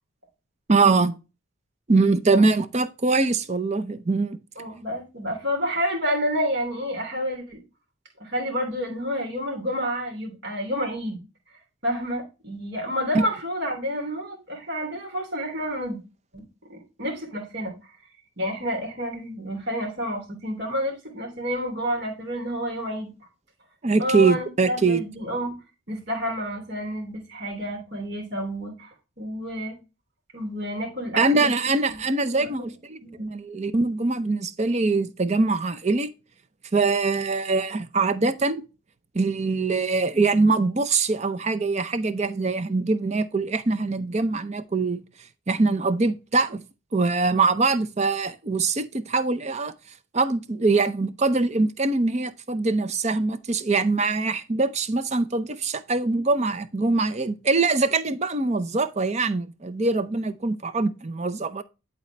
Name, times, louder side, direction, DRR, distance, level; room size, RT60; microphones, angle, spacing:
voice 1, 0.7-1.2 1.9-4.4 23.8-25.0 31.2-36.1 36.7-38.6 39.1-45.0 45.5-46.6 46.9-49.7 50.1-61.6, right 3 dB, 30° right, 0.5 m, -23 dB
voice 2, 4.6-7.6 8.2-11.2 11.8-16.0 16.3-16.4 16.7-17.7 18.4-23.1 24.0-25.5 25.9-29.8 30.3-31.5 31.9-32.0 32.3-32.7 33.0-33.3, equal, 55° right, 2.9 m, -29 dB
11.0 x 4.1 x 3.3 m
head